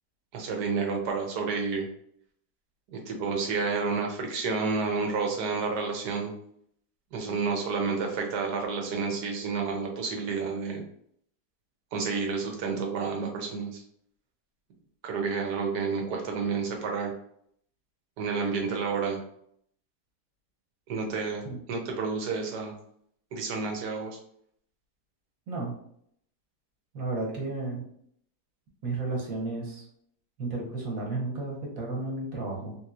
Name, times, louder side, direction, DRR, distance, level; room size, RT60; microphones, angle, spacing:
voice 1, 0.3-1.9 2.9-6.3 7.1-10.8 11.9-13.8 15.0-17.1 18.2-19.2 20.9-21.4 21.7-22.7 23.3-24.2, right 4 dB, 80° right, 2 dB, 1.4 m, -30 dB
voice 2, 26.9-27.8 28.8-29.8 30.4-32.8, right 3 dB, 60° right, -1 dB, 1.3 m, -33 dB
3.5 x 3.0 x 2.4 m, 0.67 s
omnidirectional pair, 1.8 m